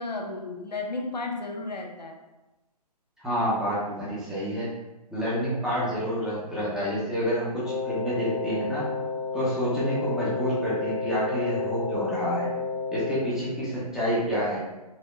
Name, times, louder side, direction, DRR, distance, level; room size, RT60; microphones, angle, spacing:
voice 1, 0.0-2.2, left 3 dB, 90° left, 2 dB, 0.7 m, -33 dB
voice 2, 3.2-4.7 5.1-8.9 9.3-12.5 12.9-14.6, equal, 5° right, -9 dB, 0.8 m, -28 dB
Wind instrument woodwind instrument, 7.6-13.4, left 4 dB, 45° left, 0.9 m, -31 dB
4.2 x 2.6 x 2.5 m, 1.0 s
figure-of-eight pair, 135°, 21 cm